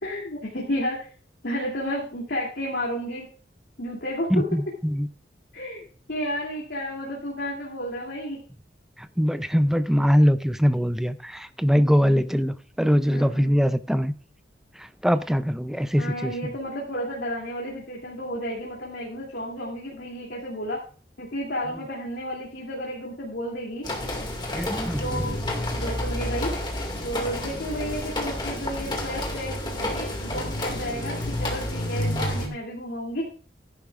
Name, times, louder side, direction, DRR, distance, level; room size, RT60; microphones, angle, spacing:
voice 1, 0.0-1.1 1.4-3.3 3.8-4.4 5.5-8.4 13.1-13.5 16.0-20.8 21.2-23.9 25.0-25.4 25.7-26.5 27.0-33.3, equal, 75° left, 2.8 m, -32 dB
voice 2, 4.3-5.1 9.0-14.1 14.8-16.3 24.5-25.2, equal, ahead, 0.4 m, -22 dB
sound 1, 23.8-32.5, left 1 dB, 25° left, 2.2 m, -30 dB
14.0 x 11.0 x 2.5 m
head